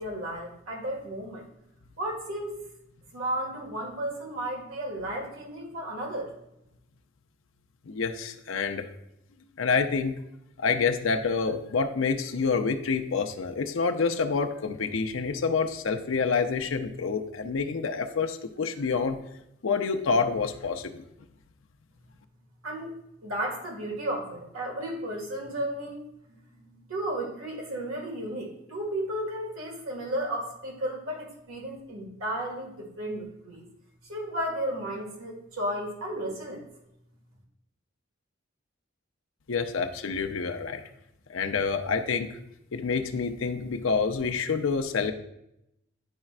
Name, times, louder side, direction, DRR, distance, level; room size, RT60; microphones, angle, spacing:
voice 1, 0.0-1.5 2.0-2.6 3.1-6.3 22.6-23.0 23.2-33.7 34.0-36.7, right 1 dB, 85° right, -1 dB, 1.9 m, -34 dB
voice 2, 7.9-8.9 9.6-10.2 10.6-19.2 19.6-21.0 39.5-40.8 41.3-42.4 42.7-45.1, left 5 dB, 75° left, 5 dB, 0.5 m, -27 dB
10.5 x 4.3 x 2.4 m, 0.82 s
head